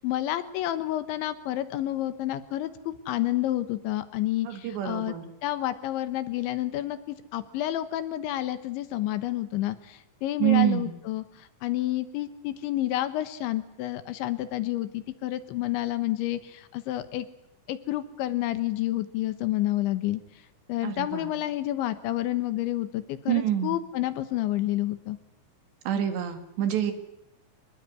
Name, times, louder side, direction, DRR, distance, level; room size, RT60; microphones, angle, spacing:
voice 1, 0.0-5.1 5.4-17.3 17.7-20.2 20.7-25.2, left 14 dB, 75° left, 13 dB, 3.3 m, -29 dB
voice 2, 4.5-5.2 10.4-11.0 20.8-21.3 23.3-23.8 25.9-26.9, right 11 dB, 65° right, 9 dB, 4.0 m, -26 dB
25.5 x 20.0 x 9.6 m, 0.78 s
omnidirectional pair, 5.7 m